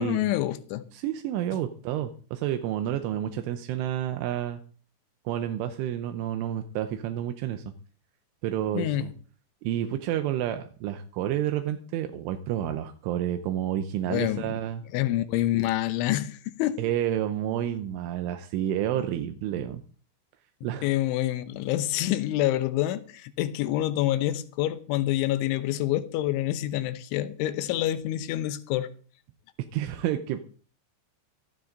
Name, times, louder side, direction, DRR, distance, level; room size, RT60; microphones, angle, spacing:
voice 1, 0.0-0.8 8.7-9.1 14.1-14.6 14.9-16.8 20.8-28.9, left 14 dB, 80° left, 3.2 m, -27 dB
voice 2, 0.9-4.6 5.3-7.6 8.4-9.1 9.6-14.8 16.8-19.8 20.6-20.9 29.7-30.4, right 11 dB, 80° right, 3.3 m, -30 dB
16.0 x 14.0 x 4.0 m
omnidirectional pair, 5.8 m